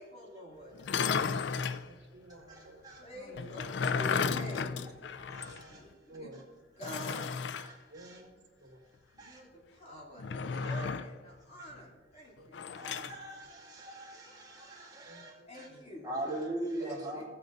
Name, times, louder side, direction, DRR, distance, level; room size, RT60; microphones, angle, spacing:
voice 1, 0.0-1.3 3.0-4.9 5.5-6.3 6.8-7.5 9.1-12.9 15.5-16.3 16.8-17.2, equal, 35° left, -3 dB, 2.9 m, -47 dB
sound 1, 0.8-1.8 3.4-5.6 5.9-6.0 6.8-7.7 10.2-11.2 12.5-13.2, left 5 dB, 75° left, 0.4 m, -33 dB
voice 2, 1.8-2.8 3.1-3.7 5.5-5.8 6.1-6.4 7.9-8.8 9.9-10.0 12.4-13.1 15.0-15.8, right 1 dB, 70° right, 1 dB, 2.0 m, -53 dB
voice 3, 2.5-3.0 5.2-5.8 6.9-7.1 7.6-8.2 9.2-9.4 10.5-10.9 12.8-15.7 16.0-17.2, right 1 dB, 20° right, -3 dB, 2.6 m, -41 dB
16.0 x 7.8 x 4.0 m, 1.3 s
head